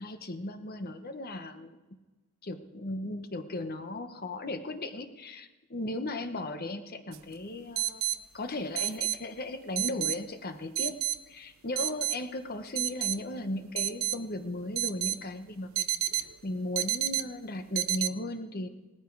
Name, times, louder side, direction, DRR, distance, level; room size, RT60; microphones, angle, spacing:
voice 1, 0.0-1.8 2.4-10.9 11.3-18.7, left 1 dB, 45° left, 8 dB, 1.1 m, -36 dB
sound 1, 7.1-7.2 7.8-8.2 8.8-9.2 9.8-10.2 10.8-11.2 11.8-12.2 12.8-13.2 13.8-14.2 14.8-15.2 15.8-16.3 16.8-17.2 17.8-18.1, right 15 dB, 70° right, 0.6 m, -29 dB
18.0 x 14.5 x 4.7 m, 1.2 s
head